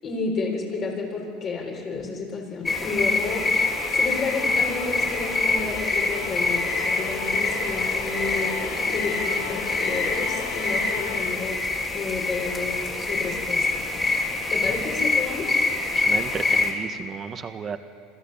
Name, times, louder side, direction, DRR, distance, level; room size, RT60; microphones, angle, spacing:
voice 1, 0.0-3.5 3.9-8.5 8.8-11.6 11.9-13.9 14.5-15.6, left 4 dB, 45° left, 0 dB, 7.5 m, -31 dB
sound 1, 2.6-16.7, left 3 dB, 25° left, 5.3 m, -25 dB
Musical instrument, 3.2-11.7, left 9 dB, 85° left, 1.6 m, -38 dB
voice 2, 15.9-17.8, right 6 dB, 35° right, 8 dB, 1.7 m, -33 dB
26.5 x 15.5 x 8.8 m, 2.3 s
supercardioid pair, 100°, 0 cm